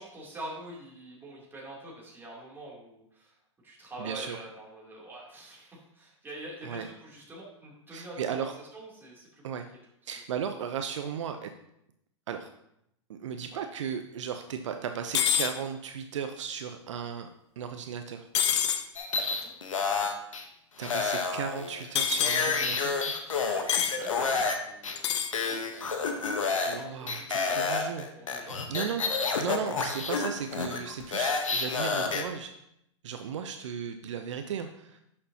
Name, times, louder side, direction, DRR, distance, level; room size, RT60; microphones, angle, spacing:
voice 1, 0.0-3.4 3.6-9.4 10.3-10.6 13.5-13.6 19.2-19.5 23.5-27.8 28.1-28.9, right 1 dB, 15° right, -4 dB, 3.0 m, -45 dB
voice 2, 4.0-4.4 6.6-6.9 7.9-8.5 9.4-9.7 10.1-11.5 12.3-12.5 13.1-18.3 20.8-23.2 26.7-28.1 28.7-32.5 33.0-35.0, right 7 dB, 70° right, 7 dB, 0.7 m, -36 dB
sound 1, 15.1-15.5 18.3-18.8 22.0-22.4 23.7-24.0 25.0-25.3, left 9 dB, 60° left, 0.9 m, -26 dB
sound 2, 19.0-20.4 20.8-24.6 24.8-25.0 25.3-26.8 27.1-32.2, left 4 dB, 85° left, 1.1 m, -29 dB
11.0 x 6.6 x 2.8 m, 0.78 s
hypercardioid pair, 115°, 16 cm